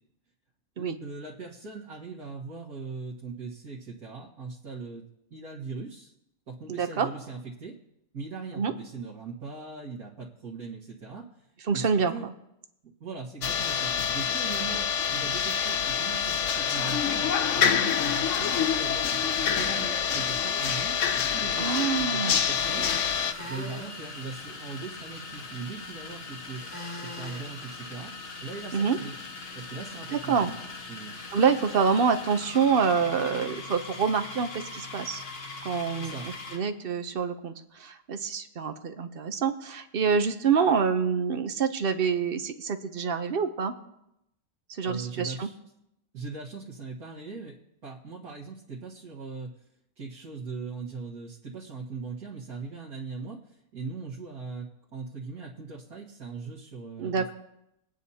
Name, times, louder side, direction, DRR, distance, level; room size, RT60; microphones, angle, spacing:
voice 1, 0.8-5.1 5.3-6.1 6.5-7.8 8.1-11.5 11.7-12.3 12.8-22.9 23.4-26.6 26.9-28.2 28.4-29.1 29.6-30.6 30.9-31.2 36.0-36.3 44.8-45.6 46.1-47.6 47.8-49.5 50.0-57.3, right 4 dB, 80° right, -6 dB, 2.1 m, -40 dB
voice 2, 6.7-7.1 8.5-8.7 11.7-12.3 21.6-22.4 28.7-29.0 30.1-30.5 31.3-35.2 35.6-43.7 44.7-45.5 57.0-57.3, right 6 dB, 50° right, 8 dB, 0.8 m, -26 dB
sound 1, 13.4-23.3, left 8 dB, 60° left, 1.0 m, -26 dB
sound 2, 18.4-19.9 22.4-23.9 26.5-27.5, equal, 15° left, 2.6 m, -42 dB
sound 3, 22.5-36.7, left 3 dB, 45° left, 1.3 m, -41 dB
23.0 x 9.1 x 2.8 m, 0.83 s
omnidirectional pair, 1.6 m